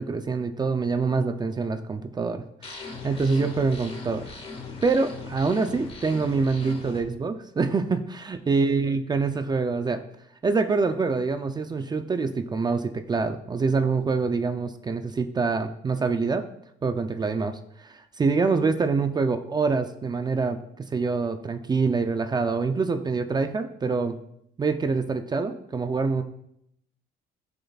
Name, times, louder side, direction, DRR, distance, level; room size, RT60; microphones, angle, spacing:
voice 1, 0.0-2.8 3.0-4.3 4.8-10.0 10.4-16.5 16.8-20.6 20.9-24.1 24.6-26.2, right 4 dB, 25° right, 8 dB, 0.5 m, -25 dB
sound 1, 2.6-7.0, left 4 dB, 35° left, 1.8 m, -39 dB
12.5 x 6.7 x 2.4 m, 0.75 s
cardioid pair, 110°, 17 cm